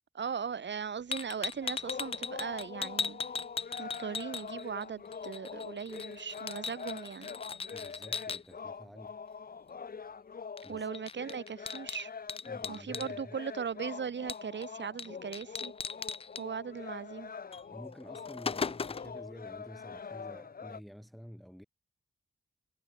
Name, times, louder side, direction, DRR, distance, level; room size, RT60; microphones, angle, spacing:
voice 1, 0.1-3.2 3.8-7.3 10.7-12.1 12.7-15.7 16.4-17.3, right 6 dB, 70° right, 2.9 m, -38 dB
sound 1, 1.1-4.8 5.1-8.4 10.6-10.7 10.9-13.1 14.3-14.7 15.0-15.1 15.3-16.4 17.5-17.6 18.0-19.2, left 5 dB, 30° left, 0.4 m, -38 dB
sound 2, 1.6-20.8, left 5 dB, 50° left, 1.3 m, -44 dB
voice 2, 7.7-9.2 10.6-10.9 12.5-13.4 17.7-21.6, equal, ahead, 4.6 m, -50 dB
cardioid pair, 85°, 20 cm